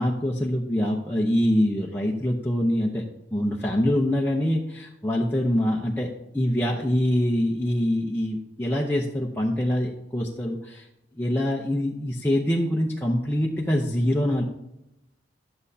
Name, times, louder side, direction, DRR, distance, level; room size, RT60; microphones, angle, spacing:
voice 1, 0.0-3.0 3.3-6.1 6.3-10.9 11.1-14.4, left 1 dB, 10° left, -3 dB, 0.7 m, -24 dB
11.0 x 8.7 x 2.8 m, 0.85 s
head